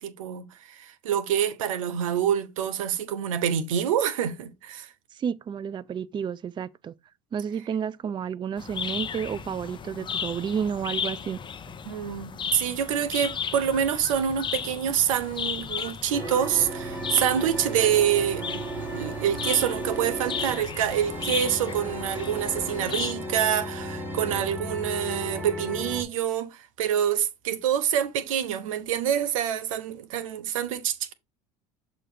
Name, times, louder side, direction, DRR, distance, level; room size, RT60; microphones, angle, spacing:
voice 1, 0.0-4.9 11.9-18.6 18.9-31.1, right 9 dB, 90° right, 0.8 m, -26 dB
voice 2, 5.1-6.9 7.3-11.4, right 7 dB, 30° right, 0.4 m, -31 dB
sound 1, 8.6-23.1, left 7 dB, 30° left, 0.7 m, -35 dB
sound 2, 16.1-26.0, right 1 dB, 10° right, 2.4 m, -35 dB
7.4 x 3.0 x 5.0 m
supercardioid pair, 85°, 17 cm